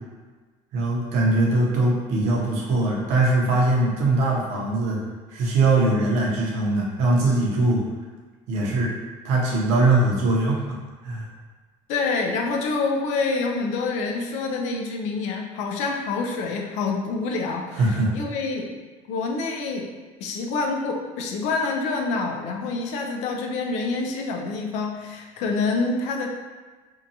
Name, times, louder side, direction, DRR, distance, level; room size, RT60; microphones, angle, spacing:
voice 1, 0.7-5.0 5.3-7.8 8.5-8.9 9.2-10.8 11.0-11.3 17.7-18.1, right 2 dB, 65° right, -3 dB, 0.7 m, -21 dB
voice 2, 11.9-18.8 19.1-19.9 20.2-26.3, left 3 dB, 65° left, 2 dB, 0.4 m, -27 dB
2.6 x 2.2 x 2.7 m, 1.3 s
cardioid pair, 165°, 13 cm